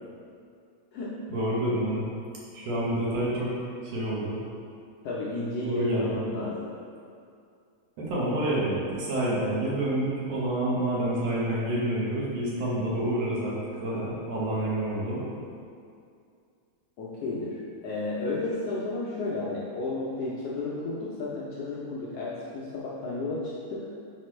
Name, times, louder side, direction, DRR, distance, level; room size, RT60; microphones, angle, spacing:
voice 1, 1.3-2.0 2.5-3.5 3.8-4.4 5.6-6.2 8.0-15.2, right 1 dB, 65° right, -6 dB, 2.1 m, -28 dB
voice 2, 5.0-6.7 17.0-23.9, left 2 dB, 75° left, -6 dB, 1.5 m, -32 dB
5.8 x 5.2 x 3.1 m, 2.4 s
omnidirectional pair, 3.4 m